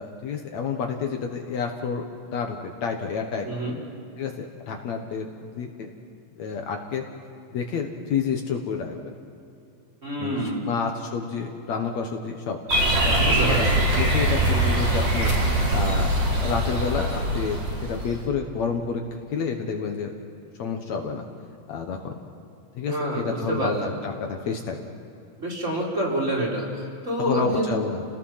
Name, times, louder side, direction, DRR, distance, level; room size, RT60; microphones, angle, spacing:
voice 1, 0.0-2.0 2.3-3.5 4.2-5.9 6.4-7.0 7.5-9.1 10.2-12.6 13.0-15.3 15.7-16.1 16.4-19.0 19.3-20.1 20.6-21.2 21.7-22.1 22.7-24.8 27.2-28.0, left 6 dB, 65° left, 3 dB, 2.4 m, -29 dB
voice 2, 3.4-3.8 10.0-10.7 13.2-13.7 22.9-23.9 25.4-27.7, right 1 dB, 20° right, -3 dB, 4.6 m, -27 dB
sound 1, 12.7-18.2, right 1 dB, 45° right, 5.4 m, -22 dB
29.5 x 19.5 x 5.8 m, 2.6 s
omnidirectional pair, 3.7 m